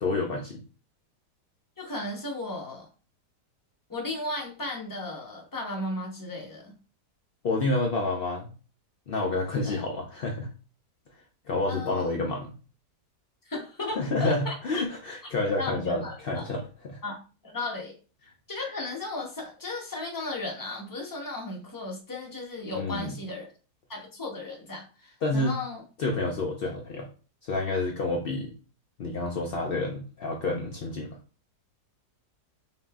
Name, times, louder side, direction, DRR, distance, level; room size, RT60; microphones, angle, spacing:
voice 1, 0.0-0.6 7.4-8.5 9.1-10.5 11.5-12.5 14.0-17.0 22.7-23.1 25.2-25.6 26.0-27.1 27.4-28.5 29.0-31.1, left 2 dB, 70° left, 1 dB, 0.5 m, -29 dB
voice 2, 1.8-2.9 3.9-6.7 9.6-9.8 11.7-12.2 13.4-14.8 15.5-16.5 17.0-17.2 17.4-17.9 18.5-23.5 23.9-25.8, left 2 dB, 15° left, -1 dB, 0.8 m, -35 dB
5.6 x 2.7 x 2.4 m, 0.34 s
omnidirectional pair, 1.7 m